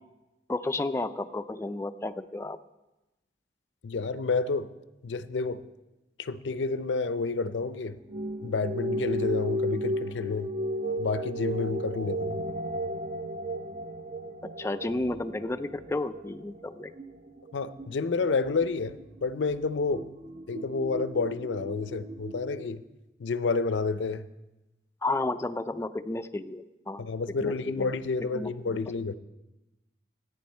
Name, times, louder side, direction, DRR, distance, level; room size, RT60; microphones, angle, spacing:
voice 1, 0.5-2.6 14.4-16.9 25.0-27.0 27.4-27.9 28.3-28.8, left 2 dB, 15° left, 0.3 m, -32 dB
voice 2, 3.8-4.7 5.0-5.6 6.2-8.0 8.4-10.5 11.0-12.4 17.5-20.0 20.5-22.8 23.2-24.3 27.0-29.1, left 4 dB, 85° left, 0.5 m, -29 dB
sound 1, 8.1-22.7, equal, 40° right, 0.6 m, -35 dB
14.0 x 9.3 x 4.3 m
head